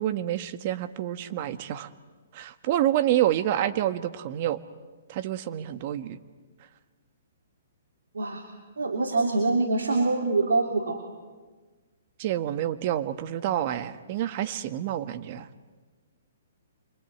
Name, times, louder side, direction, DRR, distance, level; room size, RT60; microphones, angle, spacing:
voice 1, 0.0-1.9 2.3-4.6 5.1-6.2 12.2-15.5, right 12 dB, 45° right, 12 dB, 1.5 m, -28 dB
voice 2, 8.8-11.0, right 3 dB, 90° right, 3 dB, 3.1 m, -25 dB
26.5 x 24.0 x 9.3 m, 1.4 s
hypercardioid pair, 145°, 0 cm